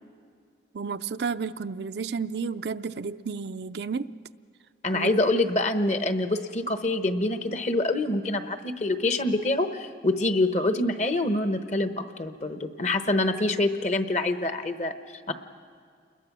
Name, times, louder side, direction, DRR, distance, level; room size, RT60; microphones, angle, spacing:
voice 1, 0.7-4.1 4.9-5.1, right 5 dB, 70° right, 11 dB, 0.5 m, -32 dB
voice 2, 4.8-14.9 15.3-15.4, left 2 dB, 40° left, 8 dB, 1.0 m, -26 dB
29.0 x 21.5 x 6.1 m, 2.1 s
head